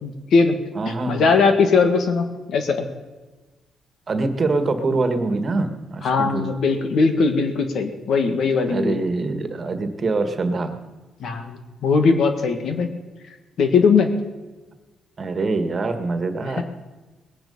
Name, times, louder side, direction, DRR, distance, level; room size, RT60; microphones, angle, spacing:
voice 1, 0.0-0.6 1.1-2.8 6.0-9.0 11.2-12.9 13.6-14.1 16.6-16.7, left 4 dB, 65° left, 7 dB, 1.7 m, -19 dB
voice 2, 0.7-1.3 4.1-6.5 8.7-10.7 15.2-16.6, right 3 dB, 40° right, 8 dB, 1.6 m, -24 dB
20.0 x 9.1 x 5.5 m, 1.2 s
cardioid pair, 90°, 0 cm